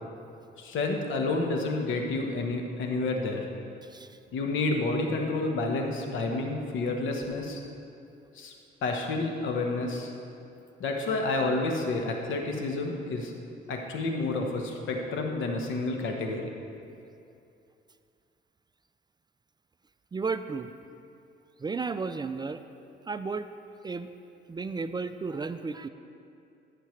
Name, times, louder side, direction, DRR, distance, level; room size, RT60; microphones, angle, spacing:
voice 1, 0.6-3.4 4.3-7.6 8.4-8.5 8.8-10.1 10.8-13.3 13.7-16.4, left 2 dB, 75° left, 2 dB, 1.2 m, -29 dB
voice 2, 3.8-4.2 20.1-20.7 21.6-22.6 23.1-23.5 23.8-24.1 24.5-25.9, right 4 dB, 20° right, 10 dB, 0.3 m, -33 dB
15.0 x 6.7 x 3.2 m, 2.6 s
cardioid pair, 90°, 20 cm